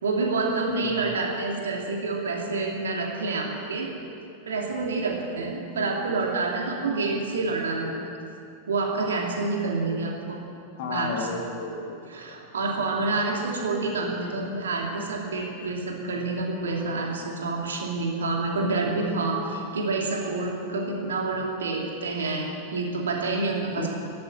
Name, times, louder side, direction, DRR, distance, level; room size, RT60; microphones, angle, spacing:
voice 1, 0.0-3.9 4.4-8.0 8.7-10.4 10.9-11.3 12.1-23.9, right 3 dB, 65° right, 0 dB, 2.7 m, -28 dB
voice 2, 0.7-1.0 5.8-5.9 6.1-6.2 10.8-12.4 23.8-23.9, left 4 dB, 50° left, 2 dB, 2.2 m, -33 dB
13.5 x 11.5 x 7.7 m, 2.6 s
figure-of-eight pair, 90°, 0 cm